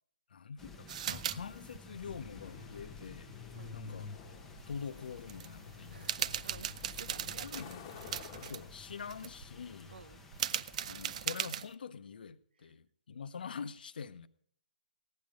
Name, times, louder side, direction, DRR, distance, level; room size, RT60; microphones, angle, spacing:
voice 1, 0.3-3.3 3.7-4.1 4.7-6.4 7.4-10.0 10.8-14.3, left 6 dB, 70° left, 0.8 m, -45 dB
sound 1, 0.6-11.3, left 3 dB, 5° left, 0.8 m, -54 dB
sound 2, 0.9-1.4 1.6-1.8 4.6-4.7 5.2-5.5 5.9-8.6 9.0-9.4 10.3-11.7, right 9 dB, 45° right, 0.4 m, -38 dB
Truck, 1.9-10.6, left 5 dB, 30° left, 1.1 m, -50 dB
voice 2, 5.9-7.9 9.9-10.2, right 5 dB, 80° right, 0.9 m, -54 dB
15.5 x 10.5 x 5.1 m
hypercardioid pair, 155°, 5 cm